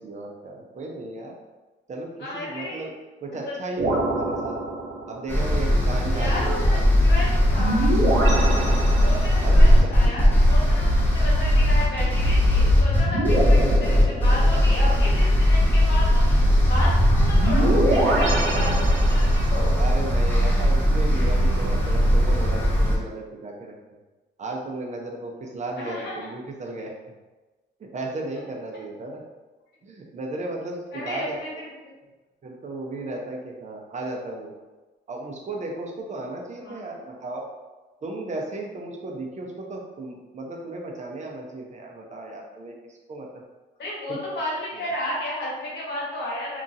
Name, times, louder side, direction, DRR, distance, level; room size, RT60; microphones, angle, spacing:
voice 1, 0.0-1.4 1.9-2.9 3.2-4.6 5.1-6.8 9.4-9.9 17.6-18.3 19.7-23.7 24.4-26.9 27.8-29.2 29.8-31.4 32.4-34.5 35.1-37.5 38.0-43.3 44.1-44.2 44.8-44.9, right 2 dB, 35° right, 0 dB, 0.6 m, -34 dB
voice 2, 2.2-2.9 3.5-3.6 6.1-6.8 7.0-8.0 9.0-19.8 25.8-26.2 30.9-31.7 36.6-36.8 43.8-46.6, left 1 dB, 60° left, -5 dB, 1.2 m, -32 dB
sound 1, 3.8-5.3 7.5-9.6 12.3-14.8 16.6-19.6, equal, 75° right, 0.8 m, -25 dB
sound 2, 5.3-23.0, equal, 10° left, 0.8 m, -19 dB
2.9 x 2.4 x 2.6 m, 1.2 s
cardioid pair, 90°, 20 cm